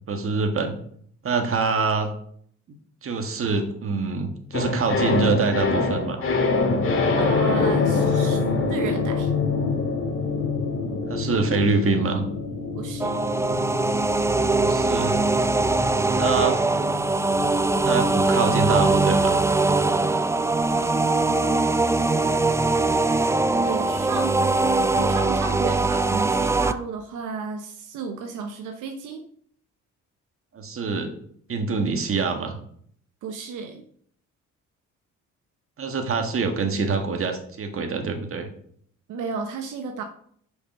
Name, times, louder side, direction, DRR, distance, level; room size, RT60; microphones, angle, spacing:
voice 1, 0.1-0.8 1.2-2.1 3.0-6.2 11.1-12.2 14.5-15.2 16.1-16.6 17.8-19.4 30.5-31.1 31.5-32.5 35.8-38.5, right 4 dB, 45° right, 5 dB, 1.6 m, -25 dB
sound 1, 4.5-20.9 21.2-21.3, left 4 dB, 45° left, 2.0 m, -26 dB
voice 2, 7.2-8.4 8.7-9.3 12.7-13.2 20.7-22.4 23.6-24.4 25.0-29.2 33.2-33.8 39.1-40.0, right 5 dB, 80° right, 5 dB, 0.9 m, -33 dB
sound 2, 13.0-26.7, right 3 dB, 10° right, 0.4 m, -22 dB
6.4 x 5.5 x 6.1 m, 0.63 s
cardioid pair, 90°, 30 cm